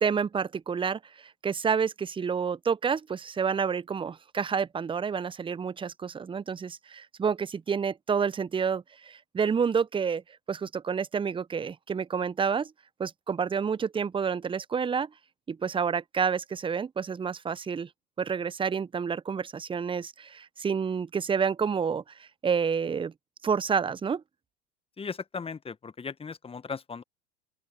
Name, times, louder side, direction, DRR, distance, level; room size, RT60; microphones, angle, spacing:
voice 1, 0.0-10.2 10.5-12.7 13.0-15.1 15.5-17.9 18.2-23.1 23.4-24.2, right 6 dB, 15° right, 0.9 m, -29 dB
voice 2, 25.0-27.0, left 5 dB, 15° left, 1.6 m, -37 dB
open air
figure-of-eight pair, 80°, 35 cm